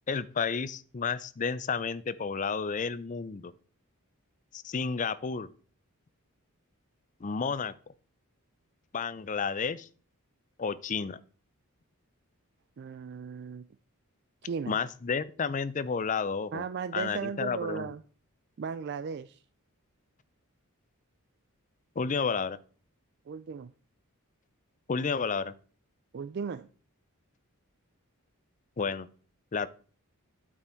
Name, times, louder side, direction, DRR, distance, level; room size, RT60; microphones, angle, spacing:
voice 1, 0.1-3.5 4.5-5.5 7.2-7.7 8.9-9.9 10.6-11.2 14.7-16.6 16.9-17.9 22.0-22.6 24.9-25.5 28.8-29.1 29.5-29.7, left 5 dB, 35° left, 16 dB, 0.5 m, -31 dB
voice 2, 12.8-13.7 14.4-14.8 16.5-18.0 18.6-19.4 23.3-23.7 26.1-26.7, right 6 dB, 50° right, 13 dB, 0.3 m, -36 dB
8.8 x 6.9 x 4.5 m, 0.42 s
head